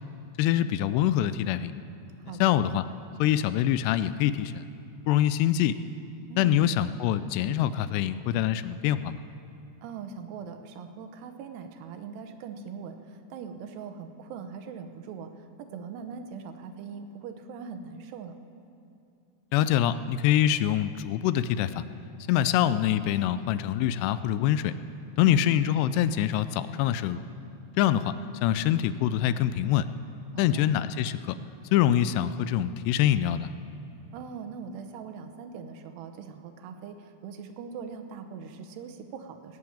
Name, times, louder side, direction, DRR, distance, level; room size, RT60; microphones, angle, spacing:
voice 1, 0.4-1.7 2.4-2.8 3.2-4.7 5.1-5.8 6.4-9.2 19.5-21.8 22.3-24.7 25.2-27.2 27.8-28.2 28.4-29.9 30.4-31.4 31.7-33.5, left 11 dB, 85° left, 13 dB, 2.6 m, -25 dB
voice 2, 2.2-2.6 6.3-6.6 9.8-18.4 25.2-25.5 30.3-30.6 34.1-39.6, right 6 dB, 80° right, 7 dB, 2.9 m, -41 dB
19.0 x 7.8 x 8.6 m, 2.6 s
omnidirectional pair, 4.9 m